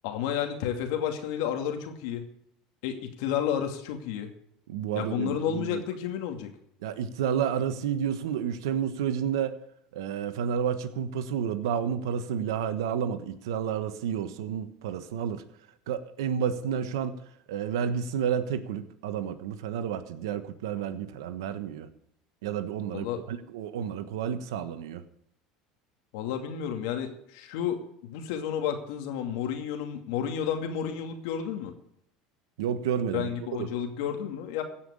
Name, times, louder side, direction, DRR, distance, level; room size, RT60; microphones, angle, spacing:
voice 1, 0.0-2.3 2.8-4.3 4.9-6.5 22.9-23.2 26.1-31.7 33.1-34.6, left 9 dB, 75° left, 5 dB, 2.4 m, -31 dB
voice 2, 4.7-5.8 6.8-9.6 9.9-15.4 15.9-17.2 17.5-21.9 22.4-25.0 32.6-33.3 33.6-33.7, right 8 dB, 85° right, 11 dB, 1.3 m, -30 dB
16.0 x 5.9 x 8.6 m, 0.74 s
supercardioid pair, 105°, 2 cm